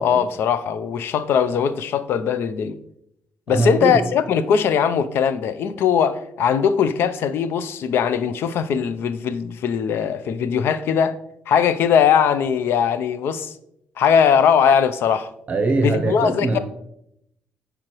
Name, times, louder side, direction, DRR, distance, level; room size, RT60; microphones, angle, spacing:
voice 1, 0.0-2.8 3.5-11.1 11.5-13.5 14.0-15.3 15.8-16.6, left 7 dB, 70° left, 0.5 m, -20 dB
voice 2, 3.5-4.0 15.5-16.6, right 3 dB, 35° right, 0.7 m, -21 dB
7.6 x 5.0 x 3.0 m
cardioid pair, 115°, 4 cm